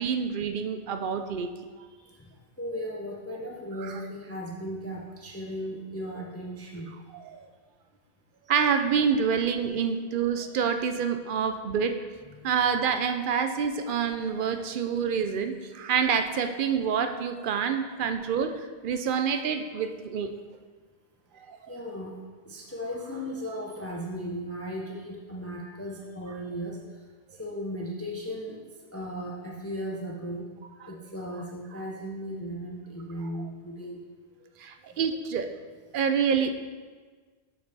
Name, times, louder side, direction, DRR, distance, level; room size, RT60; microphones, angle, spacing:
voice 1, 0.0-1.5 7.2-7.5 8.5-11.9 12.4-20.3 21.3-21.6 30.8-30.9 34.6-35.5 35.9-36.5, right 6 dB, 60° right, 7 dB, 0.6 m, -27 dB
voice 2, 1.9-7.0 9.8-9.9 12.4-12.5 21.7-22.2 22.4-26.8 27.4-28.6 28.9-30.5 30.9-34.0 34.9-35.0, equal, 15° left, -1 dB, 0.5 m, -36 dB
6.8 x 5.5 x 4.0 m, 1.4 s
omnidirectional pair, 1.1 m